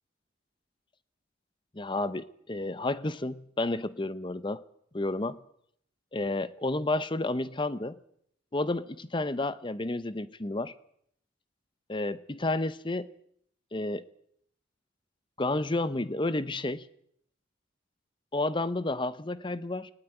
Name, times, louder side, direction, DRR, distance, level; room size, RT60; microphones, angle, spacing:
voice 1, 1.7-4.6 4.9-5.4 6.1-8.0 8.5-10.7 11.9-13.1 13.7-14.0 15.4-16.9 18.3-19.9, left 2 dB, 25° left, 0.8 m, -31 dB
19.0 x 18.5 x 9.1 m
head